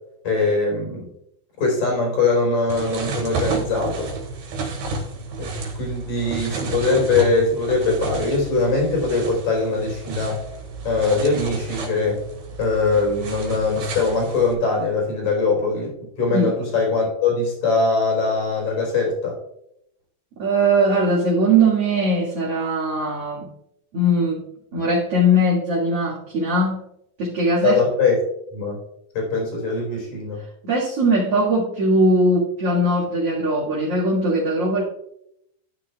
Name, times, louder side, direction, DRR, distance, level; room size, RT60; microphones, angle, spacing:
voice 1, 0.2-1.1 1.6-4.1 5.4-5.5 5.7-10.4 10.8-12.2 12.6-19.4 27.6-28.2 28.5-28.8 29.2-30.4, left 3 dB, 50° left, -2 dB, 5.3 m, -22 dB
sound 1, 2.7-14.5, right 3 dB, 75° right, 3.6 m, -31 dB
voice 2, 20.4-23.5 23.9-24.4 24.7-26.8 27.2-27.8 30.6-34.8, right 1 dB, 45° right, -7 dB, 2.3 m, -20 dB
12.5 x 9.7 x 2.4 m, 0.77 s
omnidirectional pair, 4.6 m